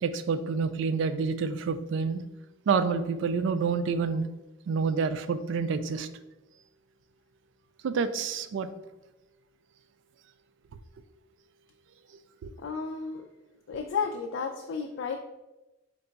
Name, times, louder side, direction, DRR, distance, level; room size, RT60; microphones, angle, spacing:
voice 1, 0.0-2.2 2.7-4.3 4.7-6.1 7.8-8.7 12.4-12.5, right 5 dB, 70° right, 11 dB, 0.3 m, -28 dB
voice 2, 12.6-13.3 13.7-15.2, left 5 dB, 75° left, 2 dB, 0.3 m, -32 dB
4.6 x 2.2 x 3.9 m, 1.0 s
head